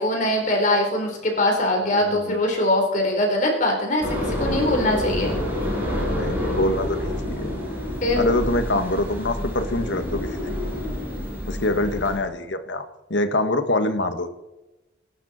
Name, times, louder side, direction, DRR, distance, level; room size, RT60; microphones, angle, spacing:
voice 1, 0.0-5.3 8.0-8.2, left 1 dB, 45° left, 1 dB, 4.0 m, -22 dB
voice 2, 1.8-2.4 6.0-7.6 8.2-10.5 11.5-14.3, left 1 dB, 80° left, 8 dB, 1.6 m, -25 dB
sound 1, 4.0-12.2, left 1 dB, 10° right, 6.6 m, -28 dB
25.5 x 11.5 x 4.3 m, 1.0 s
head